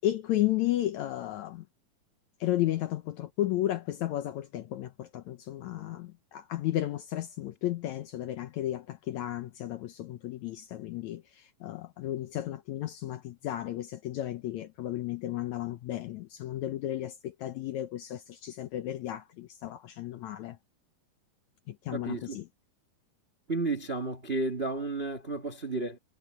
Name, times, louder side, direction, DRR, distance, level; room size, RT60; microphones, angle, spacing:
voice 1, 0.0-1.7 2.4-20.6 21.7-22.5, left 13 dB, 70° left, 1.8 m, -33 dB
voice 2, 21.9-22.4 23.5-26.0, right 3 dB, 35° right, 1.0 m, -32 dB
omnidirectional pair, 4.0 m